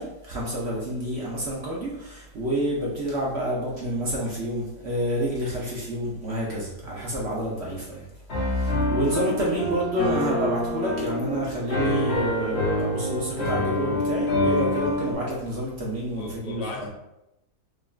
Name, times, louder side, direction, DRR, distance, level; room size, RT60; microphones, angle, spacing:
voice 1, 0.0-8.1 8.3-16.7, equal, 55° right, -4 dB, 0.8 m, -29 dB
Piano, 8.3-15.1, left 1 dB, 45° left, 1.2 m, -26 dB
voice 2, 16.1-16.9, left 4 dB, 85° left, 0 dB, 1.3 m, -37 dB
5.0 x 2.5 x 2.4 m, 0.88 s
omnidirectional pair, 1.7 m